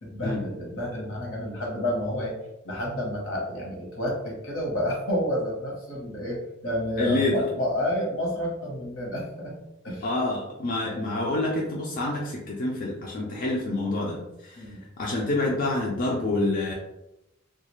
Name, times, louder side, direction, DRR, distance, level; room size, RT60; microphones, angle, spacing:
voice 1, 0.0-2.3 2.6-9.6 9.8-10.1 14.6-14.8, left 1 dB, 75° left, -2 dB, 1.0 m, -30 dB
voice 2, 7.0-7.4 10.0-14.6 15.0-16.7, left 2 dB, 45° left, -3 dB, 0.4 m, -27 dB
2.3 x 2.3 x 3.0 m, 0.90 s
head